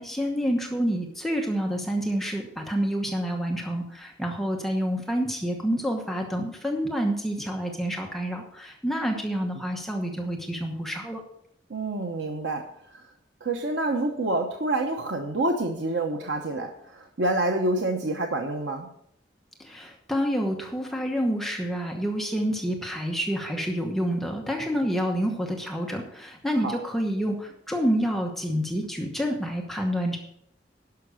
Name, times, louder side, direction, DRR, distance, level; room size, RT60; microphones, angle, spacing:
voice 1, 0.0-11.2 19.6-30.2, equal, ahead, 1 dB, 1.1 m, -28 dB
voice 2, 11.7-12.6 12.9-13.1 13.4-18.9 26.6-26.8, right 2 dB, 75° right, 4 dB, 0.9 m, -27 dB
11.5 x 5.9 x 6.4 m, 0.74 s
head